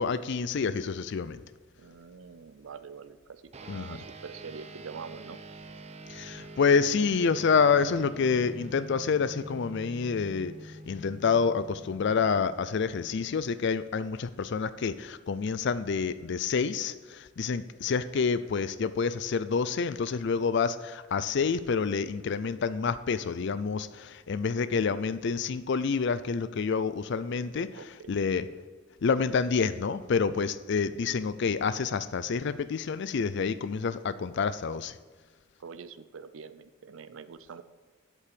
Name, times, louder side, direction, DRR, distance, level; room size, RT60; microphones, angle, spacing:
voice 1, 0.0-1.4 3.7-4.0 6.1-28.7 29.0-35.0, left 5 dB, 60° left, 14 dB, 0.4 m, -28 dB
voice 2, 1.8-5.4 27.7-28.2 35.6-37.6, right 5 dB, 90° right, 12 dB, 0.5 m, -45 dB
sound 1, 3.5-13.3, right 1 dB, 35° right, 0.8 m, -46 dB
8.4 x 8.2 x 6.9 m, 1.4 s
head